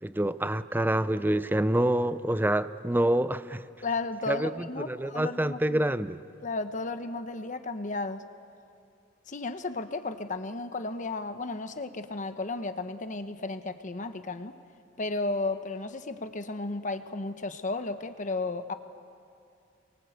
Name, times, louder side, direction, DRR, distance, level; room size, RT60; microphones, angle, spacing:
voice 1, 0.0-3.6 4.3-6.2, right 1 dB, 10° right, 13 dB, 0.6 m, -27 dB
voice 2, 3.8-5.8 6.4-8.2 9.3-14.6 15.0-18.7, left 3 dB, 40° left, 9 dB, 1.1 m, -34 dB
29.0 x 23.5 x 8.0 m, 2.5 s
head